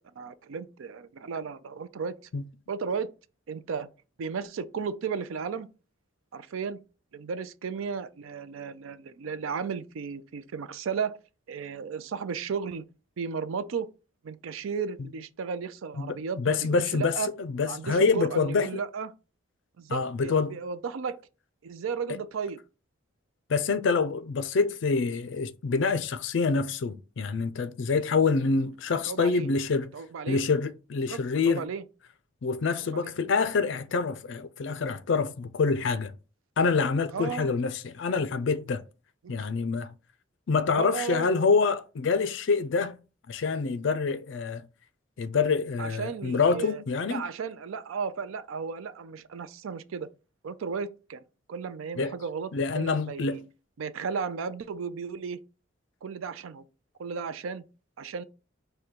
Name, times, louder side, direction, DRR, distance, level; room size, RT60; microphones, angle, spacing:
voice 1, 0.2-2.1 2.7-3.1 3.5-3.9 4.2-5.7 6.3-6.8 7.1-11.2 11.5-12.8 13.2-13.9 14.2-17.3 17.7-19.1 19.8-21.2 21.6-22.6 29.1-29.5 29.9-30.4 31.1-31.8 32.9-33.1 37.1-37.5 40.7-41.3 45.8-46.8 47.1-50.1 50.4-51.2 51.5-53.4 53.8-55.4 56.0-56.6 57.0-57.6 58.0-58.2, right 5 dB, 80° right, 0.4 m, -34 dB
voice 2, 16.0-18.7 19.9-20.6 23.5-29.9 30.3-31.6 32.4-36.1 36.6-38.8 39.3-39.9 40.5-43.0 43.3-44.7 45.2-47.3 52.0-52.1 52.5-53.4, left 4 dB, 65° left, 0.4 m, -26 dB
5.0 x 2.2 x 4.4 m
head